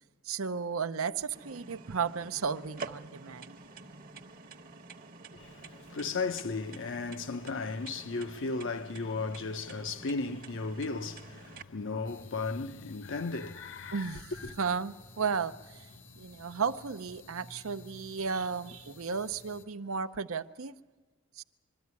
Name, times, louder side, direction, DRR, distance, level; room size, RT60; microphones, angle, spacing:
voice 1, 0.2-3.6 13.9-14.3 14.6-15.9 16.1-20.7 21.4-21.5, right 5 dB, 65° right, 0.7 m, -34 dB
sound 1, 1.3-11.6, right 4 dB, 40° right, 1.1 m, -48 dB
voice 2, 5.3-14.6, left 3 dB, 55° left, 0.8 m, -35 dB
sound 2, 12.0-19.6, left 3 dB, 80° left, 1.9 m, -54 dB
22.5 x 13.5 x 9.6 m
head